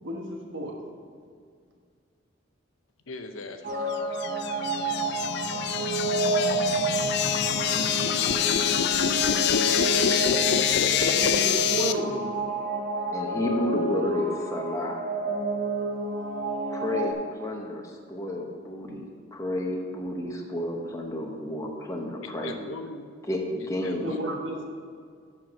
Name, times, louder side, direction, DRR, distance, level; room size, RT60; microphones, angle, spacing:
voice 1, 0.0-0.8 11.1-12.5 24.0-24.7, right 1 dB, 70° right, 1 dB, 1.4 m, -32 dB
voice 2, 3.1-4.0 22.2-23.1 23.8-24.4, left 3 dB, 85° left, 7 dB, 0.8 m, -40 dB
sound 1, 3.6-17.1, right 2 dB, 40° right, 0.8 m, -30 dB
sound 2, 3.9-11.9, left 9 dB, 55° left, 0.4 m, -25 dB
voice 3, 13.1-15.0 16.7-22.7 23.3-24.1, left 1 dB, 15° left, 0 dB, 0.9 m, -31 dB
7.5 x 6.0 x 6.0 m, 2.1 s
head